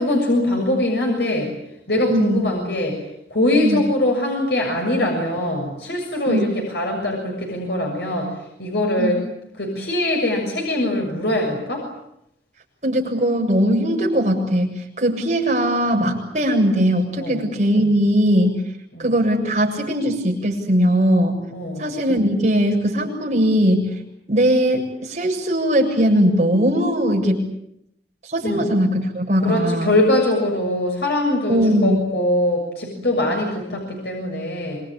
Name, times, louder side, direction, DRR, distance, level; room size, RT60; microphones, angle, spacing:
voice 1, 0.0-1.5 1.9-3.0 3.3-9.2 9.6-11.9 17.2-17.4 18.9-19.0 21.5-21.8 28.4-28.7 29.4-34.8, left 1 dB, 70° left, 1 dB, 6.9 m, -22 dB
voice 2, 2.1-2.5 3.6-3.8 6.3-6.5 9.0-9.1 12.8-18.6 19.0-21.4 21.8-24.0 24.3-27.5 28.2-29.9 31.5-32.0, equal, 40° right, 0 dB, 7.6 m, -19 dB
27.0 x 23.5 x 9.0 m, 0.78 s
head